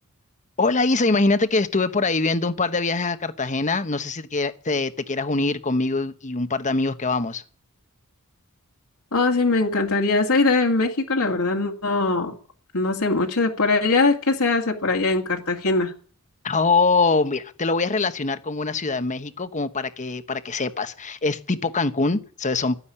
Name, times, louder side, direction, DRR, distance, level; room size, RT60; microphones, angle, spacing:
voice 1, 0.6-7.4 16.4-22.8, left 3 dB, 35° left, 11 dB, 1.1 m, -23 dB
voice 2, 9.1-12.3 12.7-15.9, left 3 dB, 65° left, 1 dB, 2.1 m, -21 dB
13.5 x 10.0 x 9.9 m, 0.43 s
head